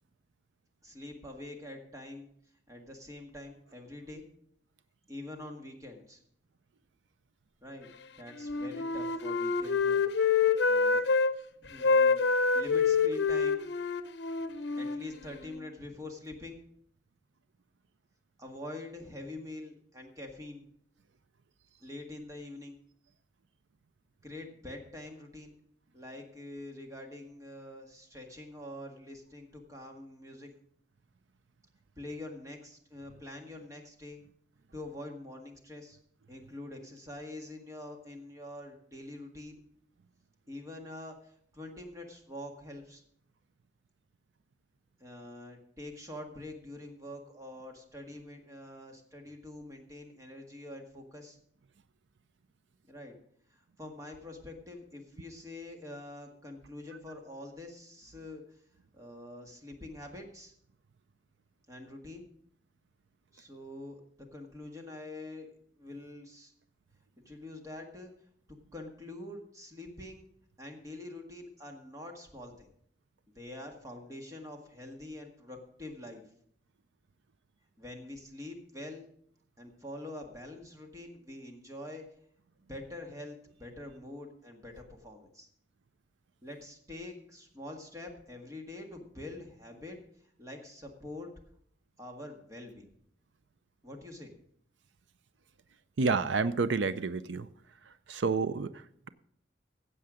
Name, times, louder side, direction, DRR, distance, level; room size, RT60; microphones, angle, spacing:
voice 1, 0.8-2.3 2.7-4.3 5.1-6.2 7.6-7.9 8.2-10.1 10.7-11.1 11.6-12.2 12.5-13.6 14.8-16.6 18.4-20.6 21.8-22.8 24.2-25.6 25.9-30.5 32.0-34.2 34.7-36.0 36.3-39.6 40.5-43.0 45.0-51.4 52.9-53.1 53.5-58.6 58.9-60.5 61.7-62.3 63.3-64.0 64.3-65.5 65.8-66.5 67.2-68.1 68.5-70.3 70.6-72.7 73.4-76.2 77.8-79.1 79.6-82.0 82.7-85.5 86.4-91.3 92.0-92.9 93.8-94.3, left 1 dB, 20° right, 3 dB, 1.8 m, -45 dB
Wind instrument woodwind instrument, 8.4-11.3 11.8-15.6, left 5 dB, 65° left, 0.8 m, -27 dB
voice 2, 96.0-97.5 98.1-99.1, right 4 dB, 85° right, 13 dB, 0.5 m, -29 dB
15.5 x 7.8 x 5.1 m, 0.67 s
head